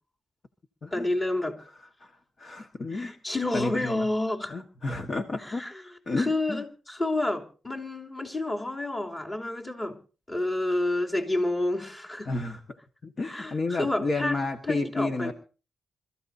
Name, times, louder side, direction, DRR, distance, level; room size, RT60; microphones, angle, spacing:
voice 1, 0.9-1.6 2.9-4.6 5.4-5.8 6.2-10.0 10.3-12.3 13.2-14.4 14.6-15.3, left 2 dB, 25° left, 1 dB, 3.2 m, -29 dB
voice 2, 2.4-3.2 3.5-4.1 4.5-5.6 6.1-6.6 12.3-12.8 13.0-15.3, left 3 dB, 50° left, 4 dB, 1.5 m, -31 dB
27.0 x 14.5 x 2.8 m, 0.36 s
cardioid pair, 75°, 0 cm